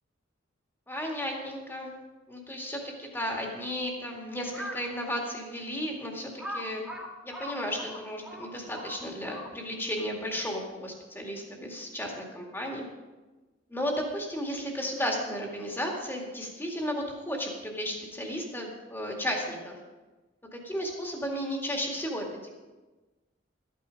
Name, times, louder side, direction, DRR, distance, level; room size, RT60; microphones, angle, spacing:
voice 1, 0.9-1.9 2.3-6.8 7.2-12.9 13.7-19.7 20.5-22.5, equal, 10° left, 0 dB, 2.1 m, -34 dB
Crow, 4.4-4.9 5.5-5.6 6.4-9.8, equal, 5° right, 1.9 m, -40 dB
13.0 x 9.1 x 5.2 m, 1.2 s
head